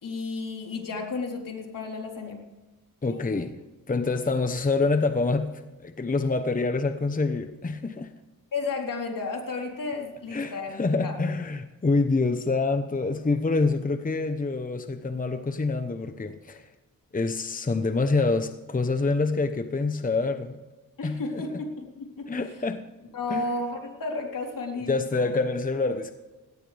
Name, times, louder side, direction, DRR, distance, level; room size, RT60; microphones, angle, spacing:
voice 1, 0.0-2.4 3.1-3.5 8.5-11.2 21.0-22.3 23.1-25.3, left 3 dB, 65° left, 1 dB, 4.0 m, -33 dB
voice 2, 3.0-3.6 3.9-8.1 10.3-16.7 17.1-20.6 21.0-21.2 22.3-22.8 23.3-23.4 24.9-26.1, left 3 dB, 25° left, 8 dB, 0.9 m, -26 dB
18.0 x 17.5 x 3.4 m, 1.2 s
cardioid pair, 85°, 35 cm